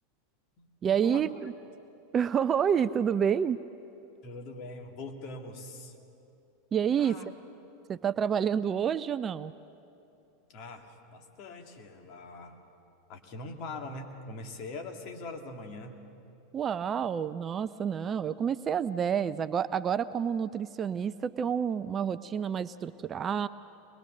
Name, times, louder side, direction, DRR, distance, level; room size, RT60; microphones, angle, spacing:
voice 1, 0.8-1.5 2.1-3.6 6.7-7.2 7.9-9.5 16.5-23.5, right 8 dB, 25° right, 15 dB, 0.4 m, -28 dB
voice 2, 4.2-6.0 7.0-7.2 10.5-12.6 13.1-16.0, left 2 dB, 45° left, 3 dB, 2.2 m, -42 dB
23.5 x 21.0 x 6.6 m, 2.8 s
figure-of-eight pair, 85°, 0 cm